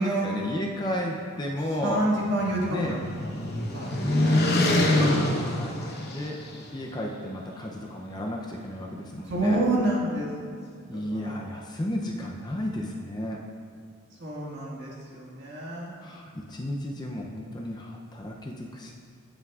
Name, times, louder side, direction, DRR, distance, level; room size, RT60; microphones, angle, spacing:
voice 1, 0.0-2.1 2.7-3.0 4.1-4.6 4.9-9.6 10.9-13.4 16.0-18.9, left 1 dB, 20° left, -1 dB, 0.5 m, -33 dB
voice 2, 1.8-3.2 3.7-3.9 9.3-10.3 10.9-11.4 14.2-15.9, right 1 dB, 50° right, -4 dB, 1.8 m, -28 dB
sound 1, 2.0-6.6, left 1 dB, 45° left, 1.0 m, -25 dB
16.5 x 5.8 x 2.4 m, 2.2 s
head